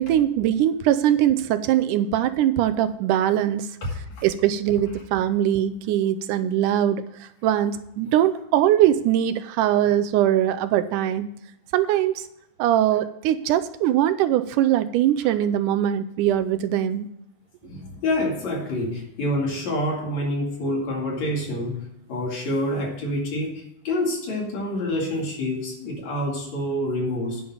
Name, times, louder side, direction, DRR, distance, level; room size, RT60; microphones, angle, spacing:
voice 1, 0.0-3.7 4.2-11.3 11.7-12.2 12.6-17.1, right 11 dB, 80° right, 10 dB, 2.1 m, -21 dB
voice 2, 3.8-4.2 17.6-21.8 22.1-27.4, left 1 dB, 60° left, -1 dB, 3.5 m, -27 dB
10.5 x 5.5 x 7.0 m, 0.78 s
omnidirectional pair, 3.6 m